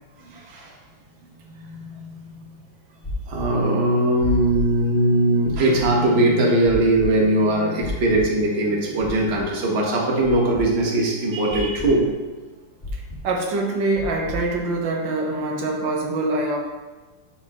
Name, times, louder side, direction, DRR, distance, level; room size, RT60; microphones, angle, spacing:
voice 1, 0.2-0.7 1.5-2.4 3.3-12.1, right 1 dB, 35° right, -2 dB, 1.4 m, -20 dB
sound 1, 3.0-3.4 4.2-4.6 5.5-5.9 6.6-7.0 7.8-8.2 9.0-9.4 10.2-10.6 11.5-11.9 12.8-13.2 14.0-14.4, left 1 dB, 25° left, 1.1 m, -32 dB
voice 2, 12.9-16.6, right 2 dB, 80° right, 0 dB, 1.8 m, -24 dB
13.0 x 4.6 x 3.0 m, 1.2 s
omnidirectional pair, 2.0 m